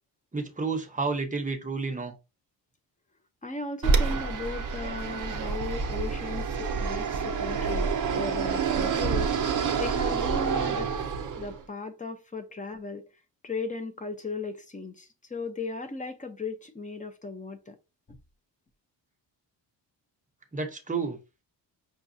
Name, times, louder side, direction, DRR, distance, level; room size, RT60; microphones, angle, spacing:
voice 1, 0.3-2.1 20.5-21.2, right 4 dB, 20° right, 0.8 m, -30 dB
voice 2, 3.4-10.9 11.4-13.0 13.4-17.8, left 3 dB, 20° left, 0.6 m, -36 dB
Fixed-wing aircraft airplane, 3.8-11.6, right 5 dB, 45° right, 0.6 m, -28 dB
5.9 x 2.3 x 2.7 m
cardioid pair, 110°, 44 cm